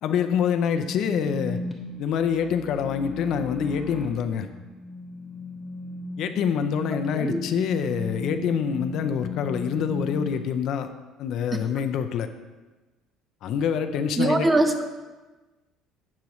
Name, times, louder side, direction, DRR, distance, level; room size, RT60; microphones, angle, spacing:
voice 1, 0.0-1.6 2.0-4.5 6.2-10.9 11.2-12.3 13.4-14.5, left 7 dB, 45° left, 8 dB, 0.5 m, -26 dB
sound 1, 0.6-10.3, left 2 dB, 5° left, 1.1 m, -35 dB
voice 2, 14.2-14.8, right 2 dB, 15° right, 7 dB, 0.6 m, -22 dB
11.5 x 8.3 x 3.1 m, 1.2 s
cardioid pair, 175°, 0 cm